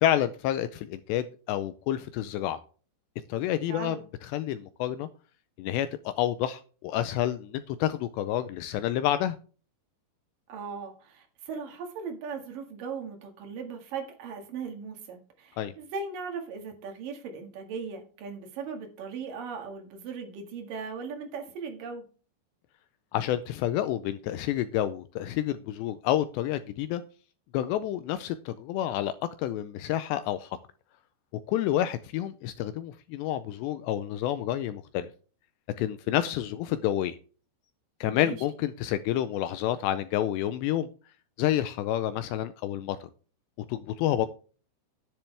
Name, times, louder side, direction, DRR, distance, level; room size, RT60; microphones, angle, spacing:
voice 1, 0.0-2.6 3.3-4.0 4.2-5.1 5.6-9.4 15.6-15.7 23.1-27.0 27.5-29.1 29.4-30.6 31.5-35.1 35.8-37.2 38.0-40.9 41.4-43.1 43.7-44.3, left 12 dB, 85° left, 13 dB, 2.5 m, -29 dB
voice 2, 3.7-4.0 10.5-22.0 38.0-38.4, right 5 dB, 55° right, 4 dB, 2.9 m, -38 dB
10.0 x 10.0 x 3.3 m, 0.38 s
omnidirectional pair, 5.5 m